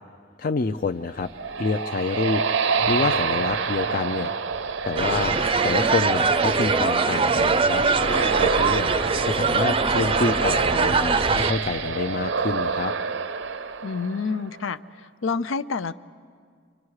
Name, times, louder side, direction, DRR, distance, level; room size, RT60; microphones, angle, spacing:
voice 1, 0.4-1.3 1.6-4.3 4.8-7.8 8.1-8.9 9.2-12.9, left 4 dB, 45° left, 6 dB, 0.5 m, -27 dB
sound 1, 1.0-14.6, right 5 dB, 70° right, 0.6 m, -28 dB
sound 2, 5.0-11.5, right 4 dB, 30° right, 0.5 m, -22 dB
voice 2, 13.8-14.8 15.2-15.9, left 4 dB, 90° left, 13 dB, 0.6 m, -27 dB
26.5 x 25.0 x 4.8 m, 2.1 s
head